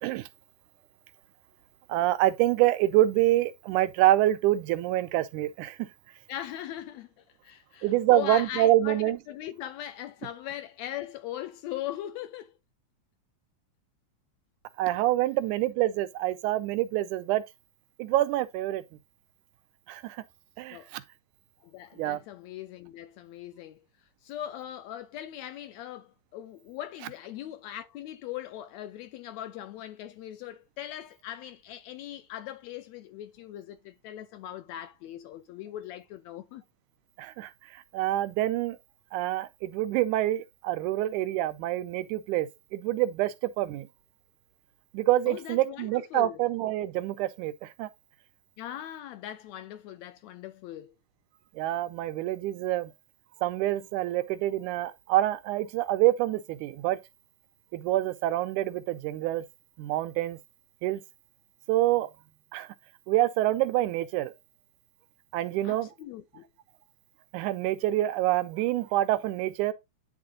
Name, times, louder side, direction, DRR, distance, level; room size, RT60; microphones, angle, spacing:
voice 1, 1.9-5.9 7.8-9.2 14.8-17.4 18.0-18.8 19.9-20.2 20.6-21.0 22.0-22.2 37.2-38.8 39.1-43.9 44.9-47.9 51.6-52.9 53.4-57.0 57.7-59.5 59.8-60.4 60.8-61.0 61.7-62.1 62.5-62.7 63.1-64.3 65.3-65.9 67.3-69.7, right 15 dB, 85° right, 2.1 m, -26 dB
voice 2, 6.3-12.5 20.7-20.9 21.6-23.8 24.2-36.6 45.3-46.4 48.6-50.9 65.6-66.5, left 12 dB, 80° left, 1.6 m, -40 dB
10.5 x 3.7 x 3.7 m
omnidirectional pair, 3.5 m